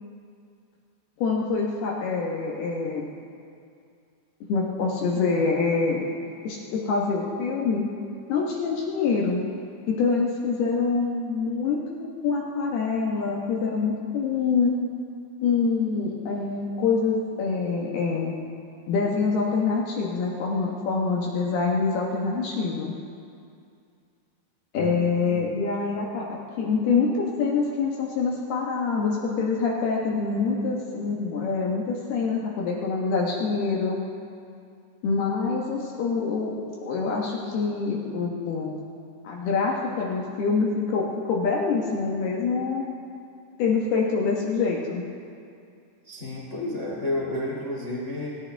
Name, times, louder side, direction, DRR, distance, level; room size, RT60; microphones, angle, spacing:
voice 1, 1.2-3.1 4.5-6.1 6.4-7.9 8.3-9.4 9.9-14.7 15.4-18.3 18.9-22.9 24.7-34.0 35.0-38.8 39.2-42.9 43.6-45.0, left 4 dB, 65° left, -2 dB, 3.0 m, -25 dB
voice 2, 46.0-48.4, left 1 dB, 35° left, -4 dB, 1.2 m, -31 dB
26.0 x 14.5 x 3.5 m, 2.4 s
omnidirectional pair, 5.4 m